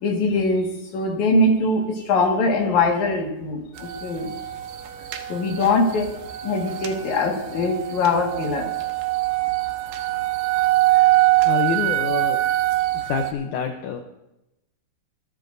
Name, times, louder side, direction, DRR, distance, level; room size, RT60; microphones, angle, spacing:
voice 1, 0.0-4.3 5.3-6.1 6.4-8.7, left 2 dB, 55° left, 1 dB, 2.8 m, -22 dB
sound 1, 3.8-13.3, right 17 dB, 70° right, 2.7 m, -23 dB
voice 2, 11.4-12.4 12.9-14.0, left 7 dB, 90° left, 5 dB, 1.7 m, -27 dB
24.5 x 12.5 x 2.7 m, 0.90 s
omnidirectional pair, 4.8 m